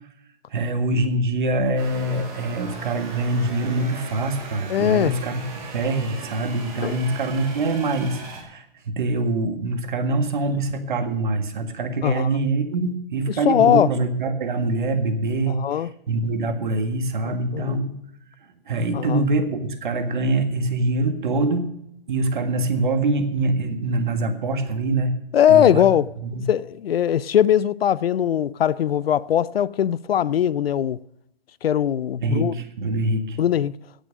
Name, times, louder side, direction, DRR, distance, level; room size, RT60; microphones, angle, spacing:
voice 1, 0.5-5.4 5.7-8.6 8.9-15.6 16.1-17.9 18.7-21.7 22.1-25.2 25.5-25.9 26.2-26.4 32.2-33.4, right 2 dB, 55° right, 1.8 m, -24 dB
sound 1, 1.8-8.4, right 3 dB, 15° right, 2.2 m, -38 dB
voice 2, 4.7-5.1 6.8-7.0 12.0-12.3 13.4-13.9 15.5-15.9 17.2-17.8 18.9-19.2 25.3-26.1 26.5-31.0 31.6-32.5 33.4-33.7, left 10 dB, 80° left, 0.6 m, -20 dB
17.5 x 6.3 x 6.5 m
hypercardioid pair, 170°, 30 cm